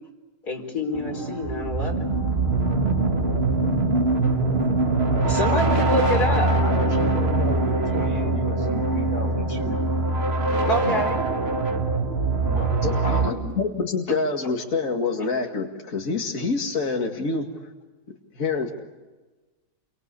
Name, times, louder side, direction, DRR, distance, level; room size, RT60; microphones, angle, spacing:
voice 1, 0.4-2.1 3.6-3.7 5.3-6.5 10.6-11.2, left 1 dB, 80° left, 2 dB, 5.0 m, -27 dB
sound 1, 0.9-13.3, right 2 dB, 40° right, 2.5 m, -23 dB
voice 2, 5.1-9.8 10.4-11.1 12.4-13.5, equal, 30° left, 2 dB, 6.1 m, -33 dB
voice 3, 12.8-17.5 18.3-18.7, left 4 dB, 55° left, 1 dB, 2.5 m, -26 dB
29.0 x 25.0 x 8.4 m, 1.2 s
omnidirectional pair, 1.7 m